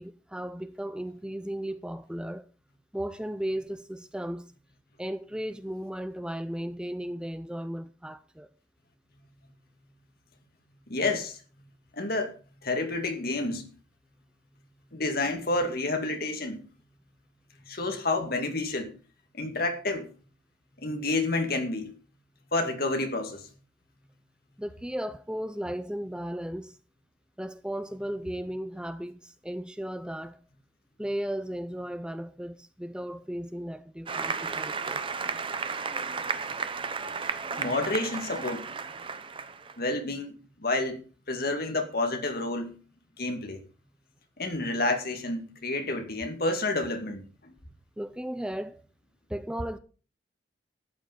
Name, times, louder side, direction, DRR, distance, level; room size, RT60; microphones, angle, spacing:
voice 1, 0.0-2.5 2.9-4.5 5.0-8.5 24.6-26.8 27.4-30.4 31.0-35.0 48.0-48.8 49.3-49.8, equal, 5° right, 0.5 m, -35 dB
voice 2, 10.9-11.4 11.9-12.3 12.6-13.6 14.9-16.6 17.7-18.9 19.3-20.1 20.8-21.9 22.5-23.5 37.6-38.6 39.8-41.0 41.3-42.7 43.2-43.6 44.4-47.5, left 2 dB, 55° left, 2.4 m, -29 dB
Applause, 34.1-39.7, right 5 dB, 30° right, 0.8 m, -33 dB
13.5 x 9.0 x 5.3 m
head